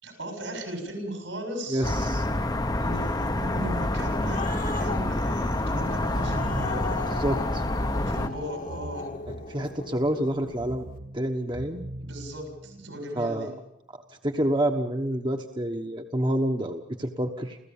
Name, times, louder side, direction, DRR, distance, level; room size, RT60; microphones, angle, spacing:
voice 1, 0.0-1.9 2.8-7.1 8.0-9.1 12.0-13.5, right 1 dB, 85° right, 4 dB, 7.0 m, -37 dB
voice 2, 1.7-2.2 7.2-7.6 9.3-10.9 11.1-11.8 13.2-13.5 14.2-17.6, right 1 dB, 25° right, 4 dB, 1.2 m, -28 dB
sound 1, 1.8-8.3, left 1 dB, 20° left, 0.9 m, -27 dB
Growling, 3.8-10.6, left 3 dB, 45° left, 1.5 m, -37 dB
sound 2, 6.0-7.2 8.5-9.9 10.5-13.0, right 1 dB, 45° right, 1.0 m, -40 dB
30.0 x 14.5 x 7.2 m, 0.81 s
head